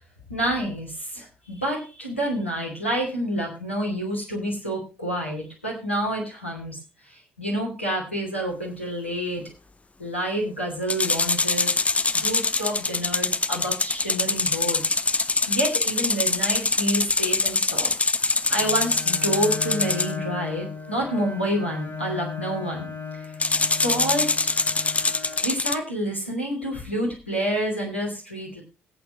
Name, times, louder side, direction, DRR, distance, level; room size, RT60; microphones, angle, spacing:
voice 1, 0.3-6.8 7.1-9.4 10.0-11.7 12.1-14.8 15.5-17.9 18.2-23.3 23.8-24.3 25.4-28.6, right 1 dB, 90° left, -2 dB, 2.8 m, -28 dB
Split Flap Display, 10.9-20.1 23.4-25.7, left 3 dB, 20° left, 0.7 m, -24 dB
Bowed string instrument, 18.5-25.5, left 5 dB, 45° left, 6.0 m, -36 dB
18.0 x 8.6 x 3.1 m, 0.32 s
figure-of-eight pair, 45°, 6 cm